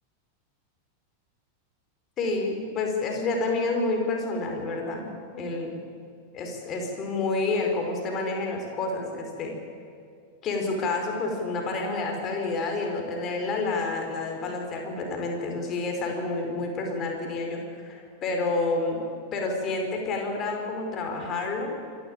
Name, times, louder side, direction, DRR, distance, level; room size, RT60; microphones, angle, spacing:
voice 1, 2.2-5.1 5.3-5.7 6.3-9.5 10.4-19.0 19.3-21.8, left 3 dB, 30° left, 2 dB, 4.8 m, -29 dB
26.0 x 12.5 x 9.0 m, 2.4 s
figure-of-eight pair, 90°, 0 cm